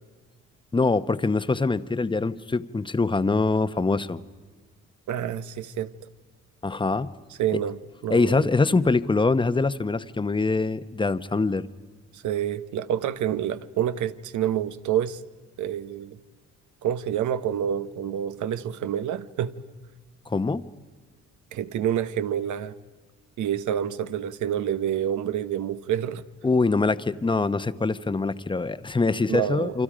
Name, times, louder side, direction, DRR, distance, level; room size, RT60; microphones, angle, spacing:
voice 1, 0.7-4.2 6.6-7.1 8.1-11.7 20.3-20.7 26.4-29.8, left 3 dB, 15° left, 0.9 m, -24 dB
voice 2, 5.1-5.9 7.4-7.8 8.0-8.5 12.1-15.2 15.6-16.2 16.8-19.5 21.5-22.7 23.4-26.2 29.3-29.8, right 10 dB, 75° right, 1.1 m, -28 dB
29.0 x 25.5 x 5.1 m
cardioid pair, 90°, 30 cm